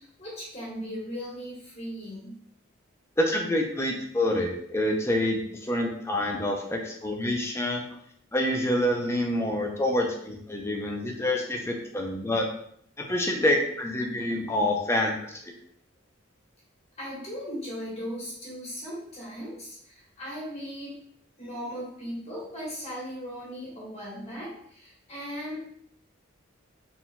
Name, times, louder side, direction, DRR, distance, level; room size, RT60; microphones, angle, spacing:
voice 1, 0.0-2.3 17.0-20.9 21.4-25.6, equal, 35° left, -6 dB, 1.6 m, -38 dB
voice 2, 3.2-7.8 8.3-12.5 13.0-15.4, left 1 dB, 15° left, 2 dB, 0.6 m, -27 dB
4.6 x 3.7 x 2.3 m, 0.67 s
head